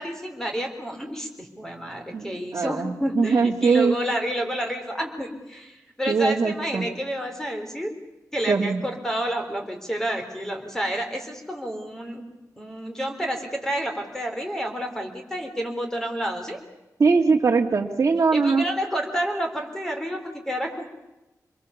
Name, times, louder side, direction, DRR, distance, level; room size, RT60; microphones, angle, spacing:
voice 1, 0.0-7.9 8.3-12.3 12.6-16.6 18.3-20.8, equal, 10° left, 3 dB, 3.8 m, -29 dB
voice 2, 2.1-4.0 6.1-6.9 8.5-8.8 17.0-18.6, right 4 dB, 50° right, 0 dB, 1.9 m, -21 dB
26.0 x 22.0 x 7.1 m, 1.0 s
wide cardioid pair, 155°, 6 cm